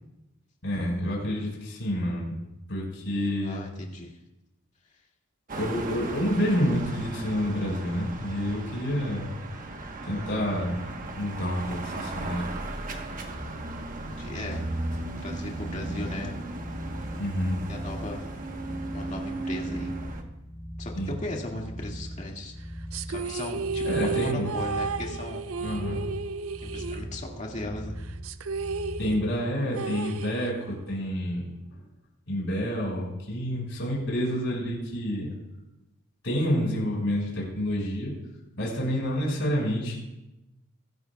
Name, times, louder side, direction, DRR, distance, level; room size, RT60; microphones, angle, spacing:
voice 1, 0.6-2.4 2.7-3.6 5.5-9.3 10.1-10.8 11.2-12.4 15.9-16.0 17.2-17.6 21.0-21.1 23.8-24.5 25.6-26.0 29.0-31.5 32.3-35.3 36.2-38.1 38.6-40.0, equal, 65° left, -3 dB, 5.3 m, -28 dB
voice 2, 3.4-4.2 10.1-10.4 14.0-14.7 15.2-16.4 17.7-18.3 18.9-19.9 20.8-22.5 23.1-25.4 26.6-28.0, left 2 dB, 35° left, -1 dB, 2.1 m, -37 dB
sound 1, 5.5-20.2, right 2 dB, 40° right, 1.2 m, -36 dB
sound 2, 14.4-29.3, equal, 5° left, 0.7 m, -40 dB
sound 3, 22.9-27.6 27.8-27.9 28.2-30.9, right 4 dB, 85° right, 0.5 m, -33 dB
23.5 x 12.5 x 2.4 m, 0.95 s
head